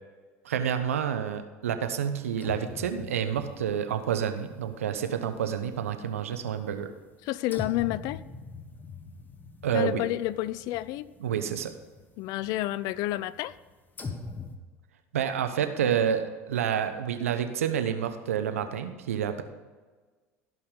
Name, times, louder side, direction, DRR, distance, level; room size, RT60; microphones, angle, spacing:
voice 1, 0.4-6.9 9.6-10.0 11.2-11.7 15.1-19.4, right 8 dB, 85° right, 8 dB, 1.0 m, -29 dB
sound 1, 2.3-5.8 6.2-7.2 7.4-14.6, left 4 dB, 25° left, 1.4 m, -43 dB
voice 2, 7.2-8.2 9.7-11.1 12.2-13.5, left 16 dB, 60° left, 18 dB, 0.5 m, -30 dB
16.0 x 5.6 x 5.3 m, 1.3 s
hypercardioid pair, 80°, 7 cm